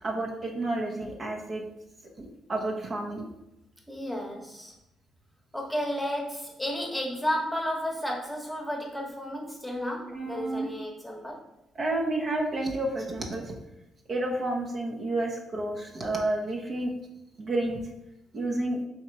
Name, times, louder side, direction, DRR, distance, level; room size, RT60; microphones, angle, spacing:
voice 1, 0.0-1.6 2.2-3.3 10.1-10.7 11.8-13.5 14.1-16.9 17.4-17.8 18.3-18.8, right 2 dB, 45° right, 0 dB, 0.8 m, -30 dB
voice 2, 3.9-4.7 5.5-11.4, equal, 5° left, -1 dB, 1.1 m, -32 dB
3.5 x 2.9 x 4.6 m, 0.89 s
cardioid pair, 90°, 0 cm